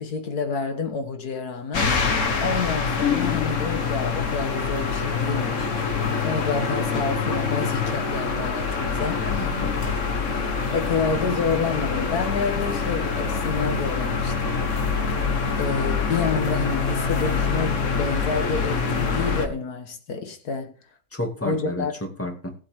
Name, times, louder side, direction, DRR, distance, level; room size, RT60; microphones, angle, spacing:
voice 1, 0.0-2.0 2.4-5.7 6.2-9.2 10.7-14.6 15.6-20.7 21.4-21.9, left 4 dB, 80° left, 1.9 m, -28 dB
sound 1, 1.7-19.5, left 5 dB, 55° left, 1.8 m, -25 dB
voice 2, 9.1-9.7 21.1-22.5, left 1 dB, 10° left, 2.1 m, -31 dB
18.5 x 7.7 x 3.6 m
omnidirectional pair, 1.6 m